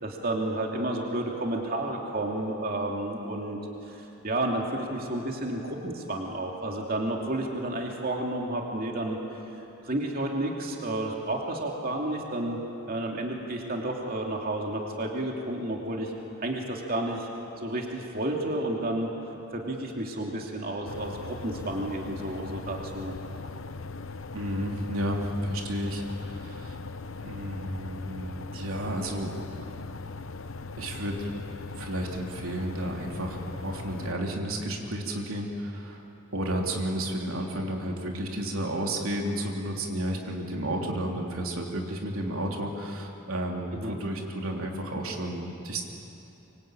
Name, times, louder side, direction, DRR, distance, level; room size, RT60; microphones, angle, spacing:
voice 1, 0.0-9.2 9.5-12.6 12.9-16.1 16.4-17.3 17.6-19.1 19.5-23.1 43.7-44.0, right 1 dB, 45° right, 0 dB, 2.8 m, -31 dB
sound 1, 20.8-34.1, left 3 dB, 65° left, 0.8 m, -39 dB
voice 2, 24.3-26.8 27.2-29.3 29.7-29.8 30.8-31.3 31.8-36.0 36.3-45.8, right 1 dB, 80° right, 0 dB, 3.2 m, -32 dB
25.0 x 24.5 x 9.0 m, 2.9 s
head